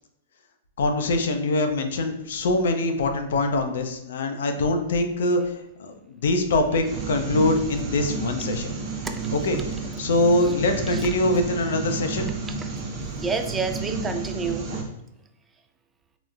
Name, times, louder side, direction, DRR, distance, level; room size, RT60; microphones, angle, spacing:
voice 1, 0.8-8.8 9.3-12.3, left 2 dB, 75° left, 5 dB, 0.4 m, -24 dB
sound 1, 6.8-14.8, right 4 dB, 35° right, 0.8 m, -31 dB
voice 2, 13.1-14.7, right 4 dB, 15° right, 6 dB, 0.3 m, -29 dB
3.8 x 2.0 x 2.3 m, 0.86 s
hypercardioid pair, 115°, 0 cm